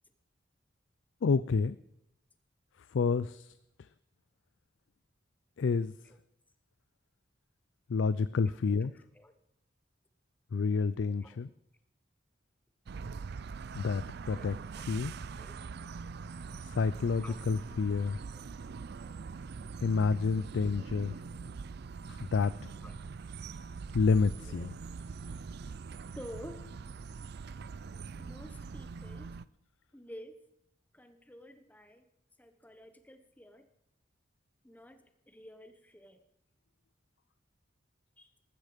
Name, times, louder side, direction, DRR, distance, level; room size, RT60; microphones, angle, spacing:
voice 1, 1.2-1.8 2.9-3.5 5.6-5.9 7.9-8.9 10.5-11.5 13.7-14.0 14.3-14.5 14.9-15.1 16.6-18.2 19.8-21.1 22.1-22.7 23.9-24.7, left 4 dB, 80° left, 16 dB, 0.4 m, -29 dB
voice 2, 8.4-9.3 11.1-11.4 14.3-15.0 15.3-15.6 17.2-17.4 18.3-18.4 20.3-20.4 20.8-20.9 22.8-23.0 24.5-24.7 26.1-26.7 28.2-29.4 29.9-30.4 30.9-32.0 32.4-33.7 34.6-36.2 38.2-38.3, equal, 10° left, 8 dB, 1.1 m, -51 dB
sound 1, 12.9-29.4, right 5 dB, 60° right, 0.4 m, -43 dB
14.5 x 13.0 x 5.1 m, 0.81 s
head